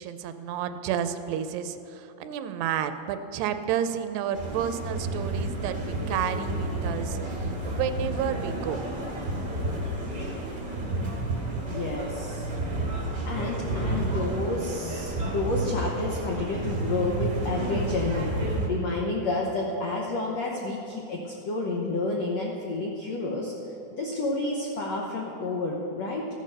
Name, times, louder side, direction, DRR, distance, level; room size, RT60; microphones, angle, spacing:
voice 1, 0.0-8.9, right 9 dB, 85° right, 10 dB, 2.7 m, -31 dB
sound 1, 4.3-18.7, right 2 dB, 40° right, 0.6 m, -31 dB
voice 2, 11.7-12.4 13.2-18.3 18.7-23.5 24.0-26.3, left 2 dB, 80° left, -1 dB, 1.5 m, -30 dB
15.0 x 8.4 x 6.5 m, 2.8 s
omnidirectional pair, 4.8 m